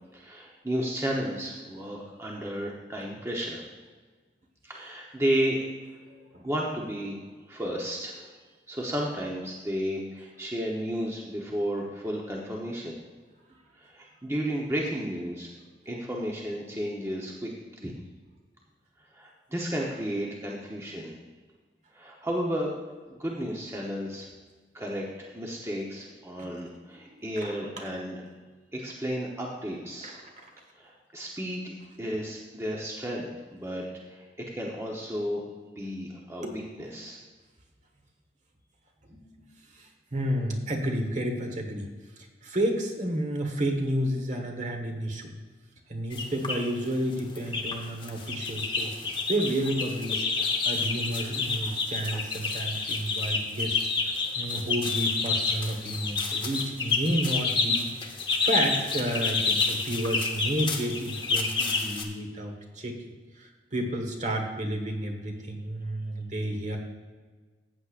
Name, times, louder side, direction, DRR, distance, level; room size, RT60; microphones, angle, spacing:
voice 1, 0.1-3.6 4.6-5.6 6.4-7.2 7.5-8.3 8.7-13.0 13.8-15.5 15.9-17.5 17.8-17.9 19.1-21.1 21.9-22.7 23.1-24.3 24.7-28.2 28.7-30.1 30.7-33.8 34.1-34.2 34.5-36.4 36.8-37.2, equal, 15° right, -2 dB, 0.9 m, -33 dB
voice 2, 6.1-6.4 26.4-26.5 27.1-27.5 30.0-30.5 36.4-36.6 39.1-39.5 39.7-41.9 42.4-45.3 45.9-48.9 49.3-53.8 54.0-57.8 58.3-62.9 63.3-66.8, right 1 dB, 45° right, 3 dB, 1.3 m, -31 dB
sound 1, 46.1-46.6 47.1-47.8 48.0-62.0, left 4 dB, 30° left, 1.0 m, -29 dB
14.0 x 8.2 x 2.5 m, 1.4 s
head